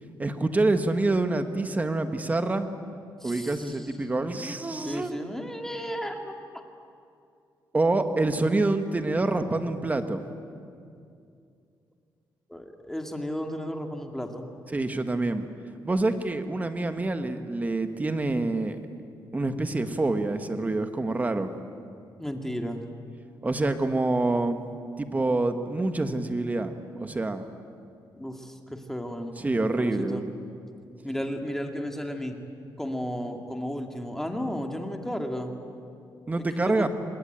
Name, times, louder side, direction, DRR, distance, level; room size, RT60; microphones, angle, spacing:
voice 1, 0.2-2.7 3.2-5.1 7.7-10.2 14.7-15.4 15.8-18.8 19.3-21.5 23.4-24.6 25.0-27.5 29.4-30.3 36.3-36.9, right 2 dB, 20° right, 8 dB, 1.5 m, -26 dB
voice 2, 3.2-3.9 4.8-6.4 12.5-14.5 22.2-22.8 28.2-29.4 29.8-30.2 31.0-32.4 32.8-35.5 36.4-36.9, equal, 5° left, 3 dB, 2.2 m, -33 dB
26.0 x 21.0 x 9.2 m, 2.4 s
wide cardioid pair, 140°, 8 cm